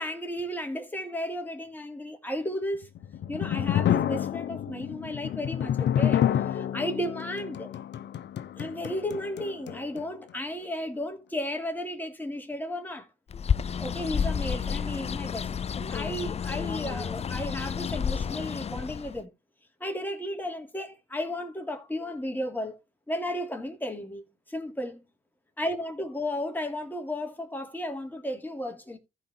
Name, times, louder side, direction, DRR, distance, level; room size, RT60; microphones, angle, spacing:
voice 1, 0.0-2.9 3.3-7.7 8.6-13.1 13.8-19.3 19.8-22.8 23.1-25.0 25.6-29.0, left 1 dB, 10° left, 3.1 m, -34 dB
sound 1, 2.8-10.1, left 10 dB, 60° left, 0.9 m, -29 dB
Bird, 13.3-19.2, left 7 dB, 30° left, 0.4 m, -30 dB
14.5 x 5.1 x 4.4 m
cardioid pair, 90°, 20 cm